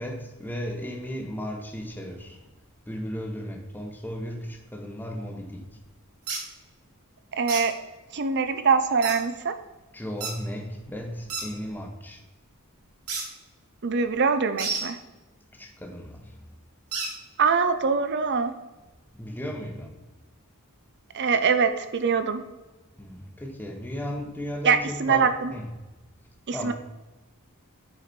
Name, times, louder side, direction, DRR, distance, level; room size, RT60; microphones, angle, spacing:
voice 1, 0.0-2.4 2.9-5.7 9.9-12.2 15.6-16.3 19.2-19.9 23.0-25.7 26.5-26.7, equal, 10° left, 2 dB, 1.0 m, -35 dB
sound 1, 6.3-6.4 7.5-7.7 9.0-9.2 10.2-10.4 11.3-11.5 13.1-13.3 14.6-14.8 16.9-17.1, right 4 dB, 80° right, 1.8 m, -30 dB
voice 2, 7.3-7.8 8.1-9.5 13.8-15.0 17.4-18.5 21.1-22.4 24.6-25.5 26.5-26.7, right 5 dB, 50° right, 10 dB, 0.6 m, -23 dB
8.2 x 5.0 x 4.4 m, 1.1 s
head